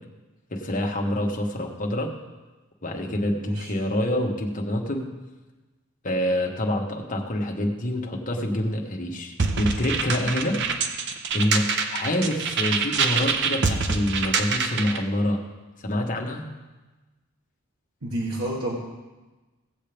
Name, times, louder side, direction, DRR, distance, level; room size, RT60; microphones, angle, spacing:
voice 1, 0.5-2.1 2.8-5.1 6.0-10.6 11.3-15.4 15.8-16.4, left 1 dB, 40° left, 1 dB, 1.4 m, -26 dB
sound 1, 9.4-15.0, right 5 dB, 60° right, 0.8 m, -26 dB
voice 2, 18.0-18.8, right 1 dB, 85° right, -3 dB, 1.7 m, -29 dB
17.5 x 7.5 x 3.4 m, 1.2 s
head